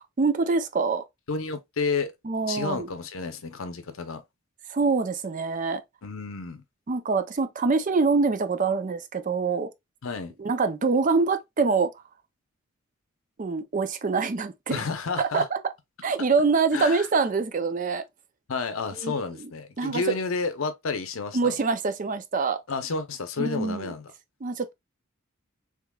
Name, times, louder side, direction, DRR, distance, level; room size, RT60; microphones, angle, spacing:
voice 1, 0.2-1.0 2.2-2.9 4.7-5.8 6.9-9.7 10.4-11.9 13.4-14.8 15.2-15.6 16.0-18.0 19.0-19.5 19.8-20.1 21.3-22.6 23.4-23.9 24.4-24.7, right 4 dB, 40° right, 0.5 m, -25 dB
voice 2, 1.3-2.1 2.5-4.2 6.0-6.6 10.0-10.3 14.7-15.5 16.7-17.1 18.5-21.5 22.7-24.1, left 4 dB, 75° left, 0.7 m, -30 dB
3.6 x 3.3 x 2.3 m
head